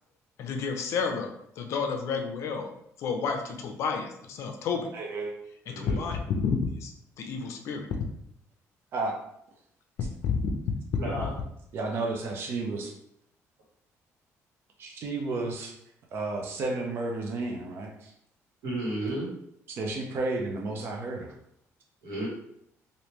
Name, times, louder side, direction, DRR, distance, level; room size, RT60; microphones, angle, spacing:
voice 1, 0.4-2.7 3.0-4.9 5.7-6.2 6.4-6.9 7.2-7.9 10.2-10.4, left 5 dB, 60° left, 4 dB, 0.5 m, -30 dB
voice 2, 4.9-5.3 8.9-9.2 11.7-12.9 14.8-15.7 16.1-18.1 19.7-21.3, right 3 dB, 45° right, 1 dB, 0.5 m, -32 dB
voice 3, 5.7-6.0 11.0-11.3 18.6-19.3 22.0-22.3, right 1 dB, 80° right, -4 dB, 1.4 m, -32 dB
3.4 x 2.6 x 3.0 m, 0.74 s
cardioid pair, 175°, 6 cm